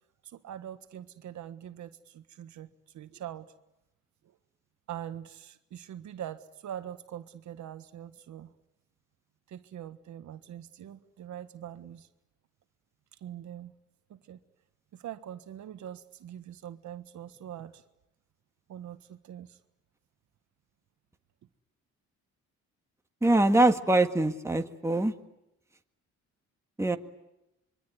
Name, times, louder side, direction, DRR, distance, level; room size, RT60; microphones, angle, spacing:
voice 1, 0.2-3.5 4.9-8.5 9.5-12.1 13.2-13.7 14.1-14.4 14.9-17.8 18.7-19.6, right 10 dB, 70° right, 10 dB, 1.5 m, -43 dB
voice 2, 23.2-25.1 26.8-27.0, right 2 dB, 10° right, 5 dB, 1.8 m, -23 dB
25.5 x 23.5 x 9.6 m, 0.89 s
cardioid pair, 90°, 30 cm